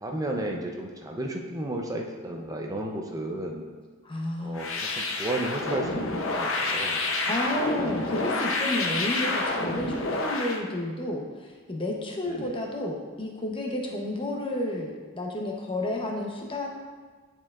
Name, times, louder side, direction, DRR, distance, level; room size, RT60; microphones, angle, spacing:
voice 1, 0.0-3.6 4.4-7.0 12.3-12.5, right 1 dB, 15° right, 1 dB, 0.5 m, -33 dB
voice 2, 4.0-4.6 7.3-16.7, left 1 dB, 25° left, 0 dB, 0.7 m, -31 dB
sound 1, 4.5-10.6, left 2 dB, 70° left, 0.7 m, -28 dB
10.0 x 4.5 x 2.4 m, 1.5 s
head